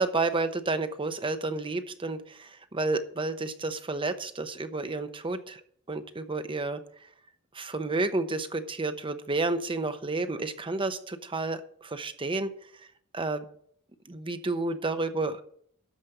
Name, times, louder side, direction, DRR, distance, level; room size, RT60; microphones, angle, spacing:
voice 1, 0.0-5.6 5.9-6.8 7.5-12.5 13.1-13.4 14.1-15.4, right 3 dB, 25° right, 10 dB, 0.9 m, -30 dB
12.5 x 5.2 x 7.8 m, 0.62 s
head